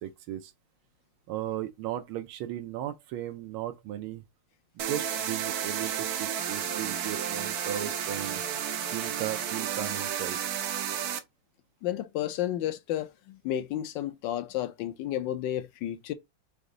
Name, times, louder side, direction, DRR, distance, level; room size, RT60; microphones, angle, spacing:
voice 1, 0.0-0.5 1.3-4.2 4.7-8.4 8.9-10.4, right 12 dB, 85° right, 1.5 m, -36 dB
sound 1, 4.8-11.2, right 9 dB, 70° right, 0.9 m, -32 dB
voice 2, 11.8-16.1, left 12 dB, 70° left, 1.2 m, -32 dB
5.2 x 2.6 x 3.8 m
omnidirectional pair, 2.3 m